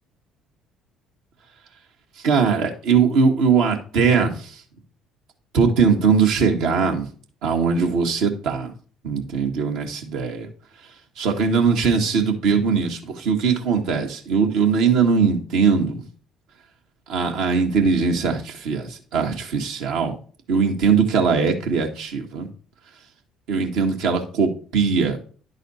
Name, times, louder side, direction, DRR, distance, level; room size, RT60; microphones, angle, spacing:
voice 1, 2.2-4.5 5.5-7.1 7.4-8.7 9.0-10.5 11.2-16.0 17.1-20.1 20.5-22.5 23.5-25.2, right 5 dB, 70° right, 2 dB, 1.4 m, -20 dB
11.0 x 4.1 x 4.1 m, 0.42 s
hypercardioid pair, 55°, 0 cm